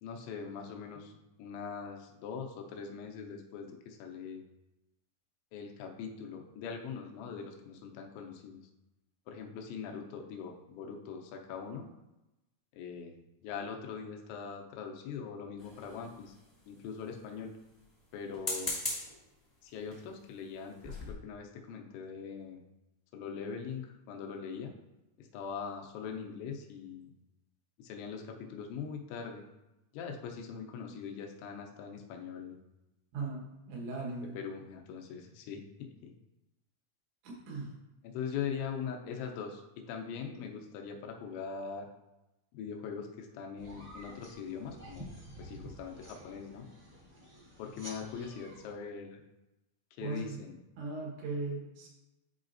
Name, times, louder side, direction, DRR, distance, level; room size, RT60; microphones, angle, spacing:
voice 1, 0.0-4.4 5.5-8.6 9.3-11.9 12.7-16.3 16.7-17.5 18.1-18.8 19.6-22.6 23.1-24.7 25.2-27.1 27.8-29.5 29.9-32.6 34.3-36.1 38.0-41.9 42.5-46.7 47.6-49.2 50.0-50.6, left 6 dB, 85° left, 2 dB, 3.1 m, -42 dB
sound 1, 15.6-16.4 18.3-19.2 19.9-20.1 20.5-20.6 20.8-21.1, left 1 dB, 55° left, 0.3 m, -38 dB
voice 2, 33.1-34.4 37.2-37.7 50.0-50.4 50.8-51.9, right 3 dB, 85° right, -2 dB, 3.7 m, -38 dB
sound 2, 43.6-48.7, equal, 60° right, 0.7 m, -50 dB
11.0 x 4.0 x 2.6 m, 0.98 s
omnidirectional pair, 5.1 m